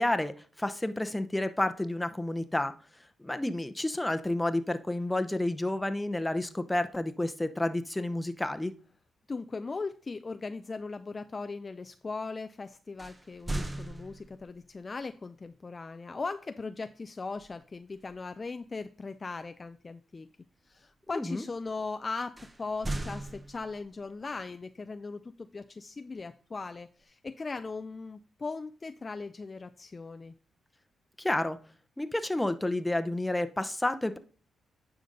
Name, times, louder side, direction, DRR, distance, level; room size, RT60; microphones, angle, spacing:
voice 1, 0.0-2.7 3.2-8.7 21.1-21.4 31.2-31.6 32.0-34.2, left 1 dB, 10° left, 10 dB, 0.8 m, -30 dB
voice 2, 9.3-20.3 20.7-30.4, left 4 dB, 35° left, 10 dB, 0.4 m, -39 dB
sound 1, 13.0-14.6 17.4-17.7 18.1-18.4 22.4-24.0, right 2 dB, 20° right, 0.9 m, -38 dB
9.4 x 5.1 x 3.9 m, 0.41 s
supercardioid pair, 55°, 0 cm